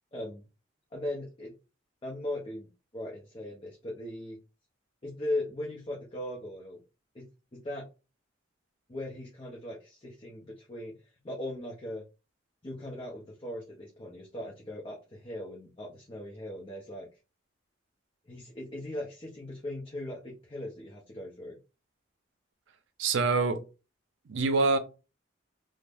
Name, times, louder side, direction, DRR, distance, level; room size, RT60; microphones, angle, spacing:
voice 1, 0.1-0.4 0.9-1.5 2.0-4.4 5.0-6.8 7.1-7.3 7.5-7.9 8.9-10.9 11.2-12.0 12.6-17.1 18.3-21.6, left 1 dB, 30° left, 0.5 m, -38 dB
voice 2, 23.0-23.6 24.3-24.8, right 3 dB, 75° right, 0.5 m, -25 dB
2.5 x 2.0 x 3.4 m
head